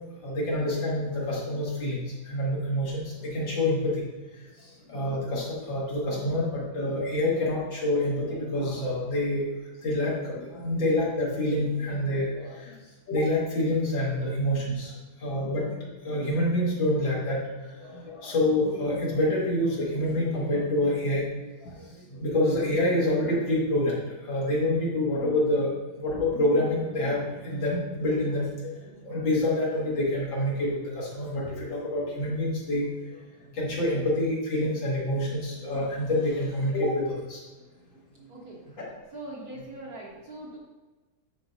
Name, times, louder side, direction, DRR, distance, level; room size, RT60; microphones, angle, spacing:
voice 1, 0.2-2.0 2.3-3.9 4.9-9.4 9.8-12.7 13.1-14.9 15.2-17.4 17.8-21.2 21.6-21.8 22.1-24.0 24.3-25.7 26.0-28.7 29.0-32.9 33.5-37.0 37.3-37.4 38.8-38.9, left 1 dB, 65° left, -6 dB, 2.5 m, -27 dB
voice 2, 38.3-40.6, right 1 dB, 55° right, -3 dB, 1.3 m, -42 dB
9.6 x 4.5 x 2.7 m, 1.2 s
omnidirectional pair, 2.3 m